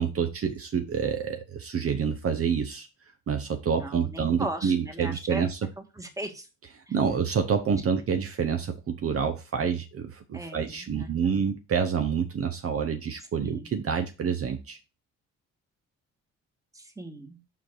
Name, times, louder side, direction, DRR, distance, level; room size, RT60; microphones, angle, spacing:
voice 1, 0.0-2.9 3.3-5.6 6.9-14.8, right 7 dB, 50° right, 0.9 m, -28 dB
voice 2, 3.8-5.4 5.8-6.5 6.9-7.0 10.3-11.4 13.4-13.7 16.7-17.4, right 1 dB, 10° right, 1.5 m, -38 dB
5.7 x 5.0 x 4.6 m
cardioid pair, 90°, 30 cm